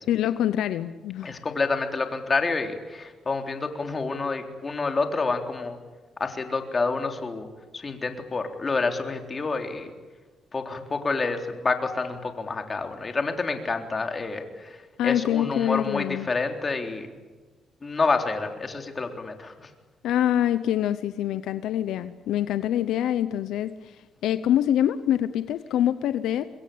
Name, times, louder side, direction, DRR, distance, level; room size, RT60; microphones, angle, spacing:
voice 1, 0.1-1.4 15.0-16.3 20.0-24.0 24.2-26.5, left 11 dB, 85° left, 13 dB, 0.8 m, -25 dB
voice 2, 1.2-5.8 6.2-7.5 7.7-9.9 10.5-17.2 17.8-19.7, left 3 dB, 30° left, 4 dB, 3.7 m, -28 dB
26.5 x 22.0 x 8.7 m, 1.3 s
cardioid pair, 90°, 0 cm